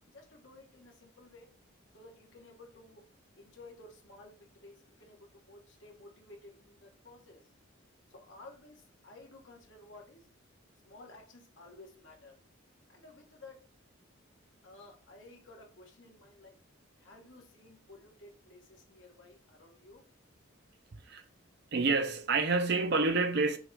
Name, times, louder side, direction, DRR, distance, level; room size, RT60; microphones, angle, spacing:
voice 1, 0.1-1.5 1.9-3.0 3.3-7.5 8.1-10.3 10.8-12.4 12.9-13.7 14.6-16.5 17.0-20.0, left 2 dB, 60° left, 1.4 m, -54 dB
voice 2, 21.7-23.6, right 3 dB, 50° right, 0.6 m, -28 dB
6.0 x 2.6 x 3.4 m
head